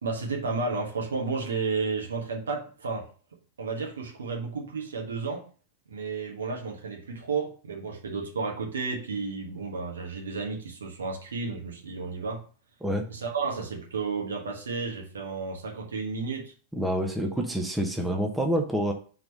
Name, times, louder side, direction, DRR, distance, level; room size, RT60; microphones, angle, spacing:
voice 1, 0.0-3.1 3.6-5.4 5.9-12.4 13.1-16.5, right 4 dB, 70° right, 2 dB, 1.4 m, -32 dB
voice 2, 16.7-18.9, equal, 5° right, 3 dB, 1.0 m, -27 dB
4.6 x 3.9 x 5.3 m, 0.40 s
figure-of-eight pair, 90°, 0 cm